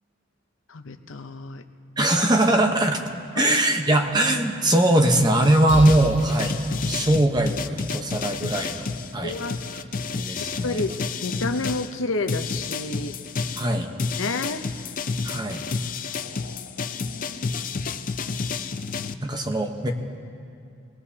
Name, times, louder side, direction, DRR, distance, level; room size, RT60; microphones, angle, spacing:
voice 1, 0.7-1.6 3.4-3.5 9.2-9.6 10.6-10.9 11.2-13.2 14.2-14.6 16.1-17.6, left 3 dB, 80° left, 7 dB, 0.8 m, -30 dB
voice 2, 2.0-3.0 3.3-6.6 6.9-8.9 9.1-9.3 10.1-10.8 13.6-13.9 15.2-15.6 19.2-19.9, right 1 dB, 20° right, 4 dB, 1.0 m, -21 dB
sound 1, 5.4-11.9 12.3-19.1, left 4 dB, 40° left, 0.5 m, -30 dB
sound 2, 5.7-9.4, right 1 dB, 75° right, 1.4 m, -35 dB
24.5 x 20.0 x 2.8 m, 2.5 s
head